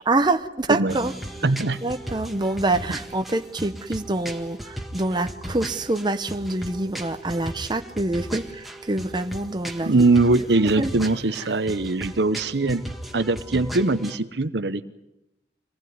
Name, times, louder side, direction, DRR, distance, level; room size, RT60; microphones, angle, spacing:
voice 1, 0.1-1.1 1.8-10.0 10.8-10.9, right 2 dB, 25° right, 0.8 m, -26 dB
sound 1, 0.9-14.2, right 1 dB, ahead, 1.8 m, -37 dB
voice 2, 1.4-1.8 9.8-12.9 13.1-14.8, right 3 dB, 70° right, 0.9 m, -21 dB
25.5 x 19.5 x 9.5 m
head